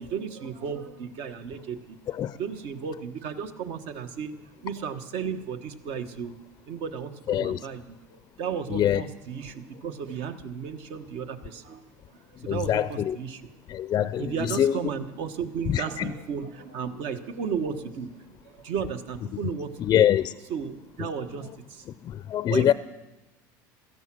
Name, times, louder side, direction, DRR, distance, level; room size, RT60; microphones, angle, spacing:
voice 1, 0.0-6.3 6.7-11.8 12.4-13.5 14.2-20.0 20.5-21.8 22.5-22.7, right 7 dB, 60° right, 1.3 m, -34 dB
voice 2, 7.3-7.6 8.7-9.0 12.5-13.2 13.7-14.8 15.7-16.1 19.8-20.4 21.0-21.1 22.0-22.7, left 11 dB, 35° left, 0.4 m, -24 dB
16.5 x 13.5 x 6.2 m
supercardioid pair, 105°, 10 cm